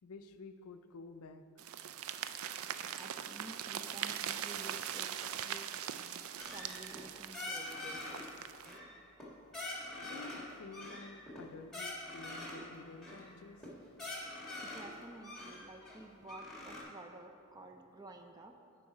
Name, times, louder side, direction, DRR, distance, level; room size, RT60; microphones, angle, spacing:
voice 1, 0.0-1.4 5.5-6.3 10.0-13.7, left 4 dB, 80° left, 9 dB, 0.5 m, -51 dB
sound 1, 1.6-8.8, right 9 dB, 70° right, 0.3 m, -41 dB
voice 2, 2.9-5.7 6.5-8.2 14.6-18.5, right 2 dB, 20° right, 4 dB, 0.5 m, -52 dB
sound 2, 6.4-7.0 7.3-8.2 8.6-9.3 9.5-10.4 10.7-12.7 13.0-13.2 13.6-13.7 13.9-14.9 15.2-16.8, left 2 dB, ahead, 1.7 m, -44 dB
11.0 x 4.7 x 4.9 m, 2.5 s
head